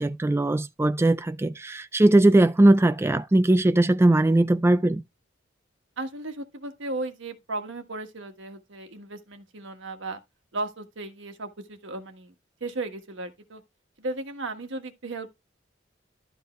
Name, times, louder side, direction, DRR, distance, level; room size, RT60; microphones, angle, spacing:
voice 1, 0.0-5.0, right 1 dB, 15° right, 0.3 m, -20 dB
voice 2, 6.0-10.2 10.5-12.3 12.6-13.6 14.0-15.4, right 2 dB, 80° right, 1.4 m, -35 dB
12.0 x 4.6 x 3.1 m
head